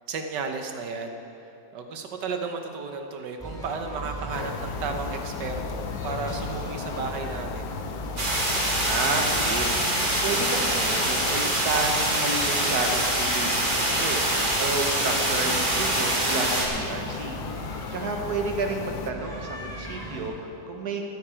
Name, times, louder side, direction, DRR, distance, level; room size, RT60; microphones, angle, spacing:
voice 1, 0.1-1.2 1.7-7.8 17.8-18.2, right 4 dB, 80° right, 5 dB, 1.7 m, -34 dB
sound 1, 3.4-20.3, right 1 dB, ahead, 2.7 m, -38 dB
sound 2, 4.3-19.1, left 9 dB, 70° left, 1.1 m, -37 dB
sound 3, 8.2-16.7, right 1 dB, 30° right, 2.0 m, -25 dB
voice 2, 8.8-9.7 10.2-17.4 17.9-21.0, right 3 dB, 60° right, 2 dB, 1.8 m, -31 dB
14.0 x 13.5 x 4.5 m, 2.8 s
omnidirectional pair, 1.9 m